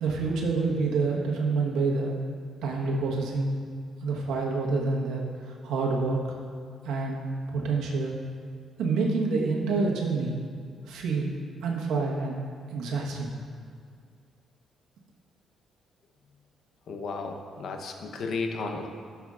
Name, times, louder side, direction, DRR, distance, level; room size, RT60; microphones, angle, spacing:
voice 1, 0.0-2.2 2.6-3.5 4.0-6.2 6.8-8.2 8.8-10.4 10.9-11.3 11.6-12.4 12.7-13.3, right 3 dB, 85° right, -1 dB, 1.3 m, -27 dB
voice 2, 16.9-18.9, left 4 dB, 65° left, 4 dB, 0.9 m, -33 dB
12.5 x 7.1 x 2.5 m, 2.1 s
cardioid pair, 90°, 0 cm